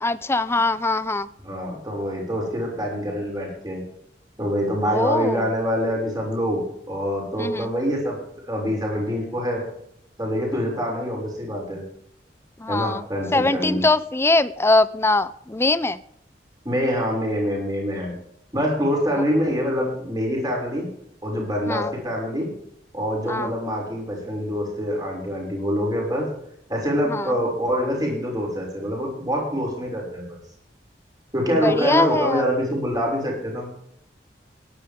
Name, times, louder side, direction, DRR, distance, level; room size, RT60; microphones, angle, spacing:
voice 1, 0.0-1.3 4.9-5.4 7.4-7.7 12.6-13.0 13.3-16.0 21.7-21.9 23.3-23.5 27.1-27.3 31.6-32.4, left 2 dB, 15° left, 14 dB, 0.6 m, -22 dB
voice 2, 1.4-3.8 4.4-9.6 10.2-11.8 12.7-13.8 16.6-18.1 18.5-20.9 21.2-22.5 22.9-26.3 26.7-30.4 31.3-33.7, equal, 25° right, -1 dB, 6.6 m, -25 dB
18.0 x 11.5 x 3.7 m, 0.71 s
head